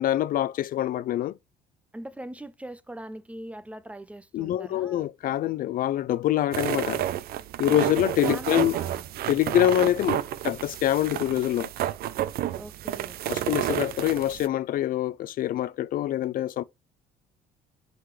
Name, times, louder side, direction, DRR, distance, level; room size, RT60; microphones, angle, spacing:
voice 1, 0.0-1.4 4.3-7.0 7.6-8.8 9.3-11.7 13.3-16.6, left 13 dB, 55° left, 0.4 m, -25 dB
voice 2, 1.9-5.1 8.2-9.0 12.5-13.2, right 1 dB, 10° right, 0.6 m, -41 dB
sound 1, 6.5-14.5, right 12 dB, 65° right, 0.6 m, -30 dB
10.0 x 4.0 x 3.2 m
cardioid pair, 110°, 17 cm